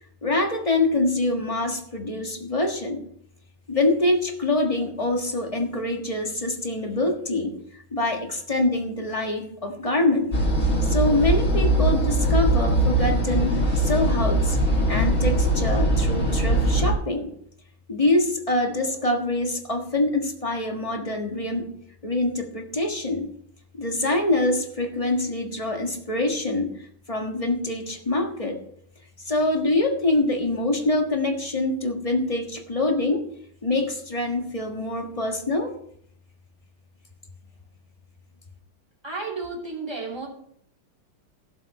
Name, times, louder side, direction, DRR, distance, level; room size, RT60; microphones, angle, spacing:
voice 1, 0.2-3.0 3.7-7.5 7.9-10.4 10.8-14.6 14.9-17.3 17.9-21.8 22.0-23.3 23.7-26.7 27.1-28.6 29.2-33.2 33.6-35.7, left 2 dB, 20° left, 3 dB, 1.4 m, -25 dB
sound 1, 10.3-16.9, right 1 dB, 40° left, 2.8 m, -21 dB
voice 2, 39.0-40.3, right 3 dB, 10° right, -2 dB, 3.1 m, -32 dB
17.0 x 7.4 x 4.3 m, 0.68 s
omnidirectional pair, 2.2 m